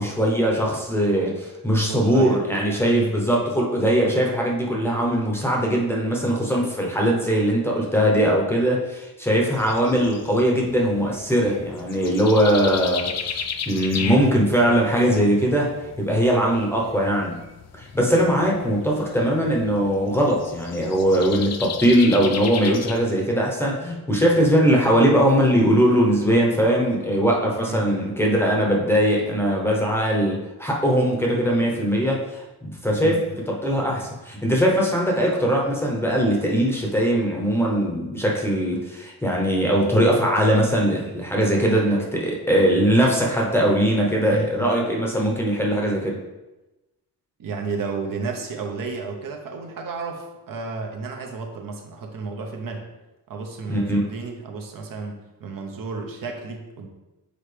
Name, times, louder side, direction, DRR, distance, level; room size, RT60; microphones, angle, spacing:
voice 1, 0.0-15.7 16.0-17.4 17.8-46.2 53.7-54.0, equal, 5° left, -2 dB, 0.8 m, -21 dB
voice 2, 1.9-2.4 2.9-3.3 13.9-14.4 27.6-28.1 33.0-33.4 44.3-44.7 47.4-52.8 53.3-56.9, right 4 dB, 60° right, 3 dB, 0.9 m, -32 dB
sound 1, 9.6-23.0, left 7 dB, 45° left, 0.4 m, -36 dB
6.8 x 4.4 x 3.3 m, 1.1 s
wide cardioid pair, 165°, 38 cm